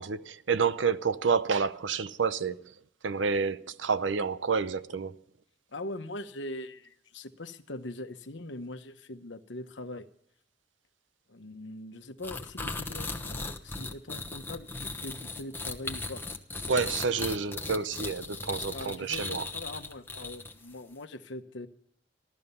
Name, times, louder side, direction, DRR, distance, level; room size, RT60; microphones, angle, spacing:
voice 1, 0.0-2.7 3.0-5.2 16.7-19.5, right 5 dB, 80° right, 0.7 m, -29 dB
voice 2, 5.7-10.1 11.3-16.3 18.7-21.7, left 1 dB, 75° left, 1.1 m, -41 dB
sound 1, 12.2-20.7, left 3 dB, 10° left, 1.1 m, -37 dB
15.0 x 12.5 x 5.5 m
head